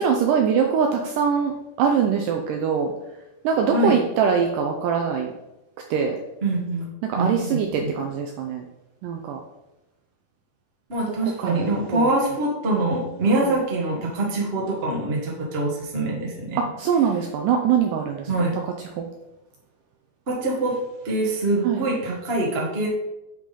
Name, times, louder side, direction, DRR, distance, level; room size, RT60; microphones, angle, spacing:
voice 1, 0.0-1.5 1.8-2.9 3.4-5.3 5.9-6.2 7.0-8.7 9.0-9.4 11.4-12.1 13.4-13.5 16.6-18.3 19.0-19.1 21.6-21.8, right 7 dB, 90° right, 3 dB, 1.9 m, -22 dB
voice 2, 6.4-6.9 7.1-7.9 10.9-16.6 18.3-18.5 20.3-20.8 21.0-22.9, right 2 dB, 45° right, -3 dB, 0.7 m, -24 dB
10.0 x 3.9 x 4.1 m, 0.95 s
omnidirectional pair, 4.4 m